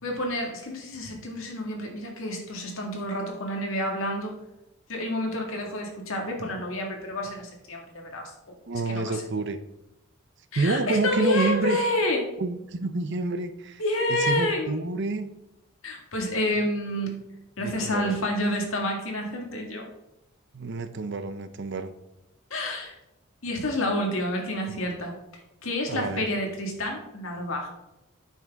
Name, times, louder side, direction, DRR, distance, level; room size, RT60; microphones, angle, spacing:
voice 1, 0.0-4.4 4.9-9.2 10.5-12.3 13.8-14.8 15.8-17.2 17.6-19.9 22.5-23.0 23.4-25.1 25.6-27.7, left 1 dB, 70° left, 1 dB, 1.8 m, -29 dB
voice 2, 8.7-9.6 10.6-11.8 12.4-13.8 14.1-15.3 17.6-18.2 20.5-21.9 25.9-26.3, right 3 dB, 55° right, 11 dB, 0.6 m, -28 dB
9.1 x 5.9 x 3.5 m, 0.94 s
head